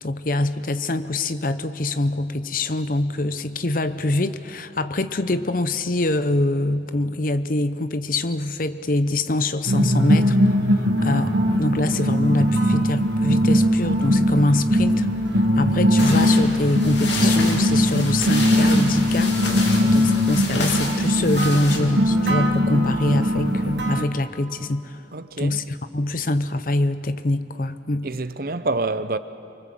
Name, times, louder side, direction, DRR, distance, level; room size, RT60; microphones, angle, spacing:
voice 1, 0.0-19.4 19.8-25.0 25.4-28.1, left 2 dB, 50° left, 0.8 m, -24 dB
sound 1, 9.7-24.0, equal, 70° right, 1.7 m, -20 dB
sound 2, 13.2-23.7, equal, 15° left, 6.3 m, -42 dB
sound 3, 16.0-21.8, left 3 dB, 75° left, 3.3 m, -30 dB
voice 2, 25.1-25.6 28.0-29.2, right 3 dB, 55° right, 0.8 m, -27 dB
24.5 x 24.5 x 7.7 m
head